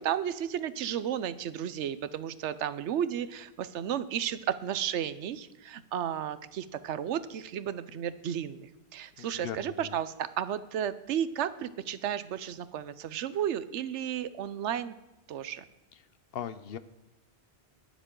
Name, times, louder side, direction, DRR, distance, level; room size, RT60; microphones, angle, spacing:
voice 1, 0.0-14.9 15.3-15.6, right 9 dB, 90° right, 14 dB, 1.0 m, -33 dB
voice 2, 9.2-9.9 16.3-16.8, left 9 dB, 65° left, 14 dB, 0.7 m, -39 dB
22.0 x 7.3 x 3.8 m, 0.98 s
omnidirectional pair, 1.1 m